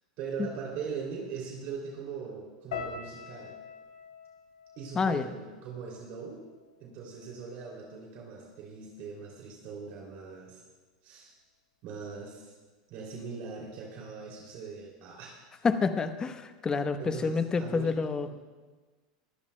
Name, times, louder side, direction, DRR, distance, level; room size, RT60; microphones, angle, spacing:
voice 1, 0.2-3.5 4.8-6.4 6.8-10.6 11.0-11.3 11.8-12.5 12.9-15.4 17.0-17.9, right 5 dB, 55° right, -2 dB, 2.8 m, -40 dB
sound 1, 2.7-6.9 7.2-8.0 8.5-8.8, left 6 dB, 85° left, 3.0 m, -45 dB
voice 2, 4.9-5.3 15.6-18.3, left 4 dB, 20° left, 9 dB, 0.9 m, -28 dB
23.0 x 14.5 x 2.2 m, 1.3 s
supercardioid pair, 120°, 4 cm